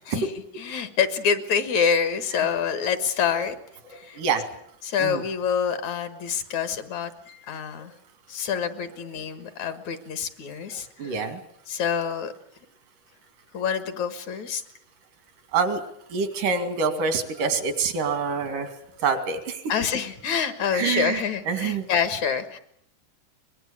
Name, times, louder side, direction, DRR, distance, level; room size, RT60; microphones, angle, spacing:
voice 1, 0.1-3.5 3.9-4.2 4.8-7.9 8.3-11.3 11.7-12.3 13.5-14.6 19.7-22.6, left 7 dB, 65° left, 11 dB, 2.8 m, -27 dB
voice 2, 11.0-11.4 15.5-15.8 16.1-18.7 19.0-19.6 20.7-21.2 21.5-21.9, right 5 dB, 85° right, 8 dB, 4.0 m, -25 dB
23.5 x 20.5 x 8.7 m, 0.70 s
omnidirectional pair, 3.6 m